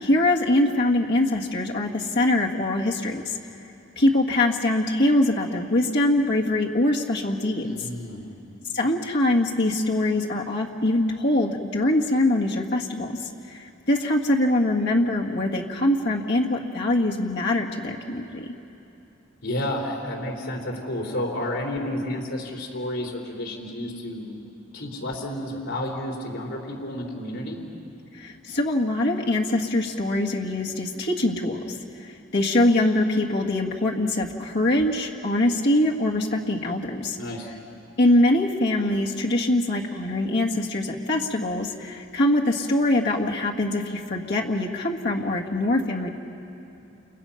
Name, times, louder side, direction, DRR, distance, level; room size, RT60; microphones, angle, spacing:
voice 1, 0.0-3.4 4.0-7.9 8.7-18.5 28.1-37.2 38.0-46.1, left 1 dB, 55° left, -1 dB, 1.8 m, -23 dB
voice 2, 7.6-8.3 19.4-24.4 24.7-27.6 37.2-37.5, left 1 dB, 75° left, -1 dB, 4.0 m, -31 dB
30.0 x 29.5 x 5.8 m, 2.9 s
head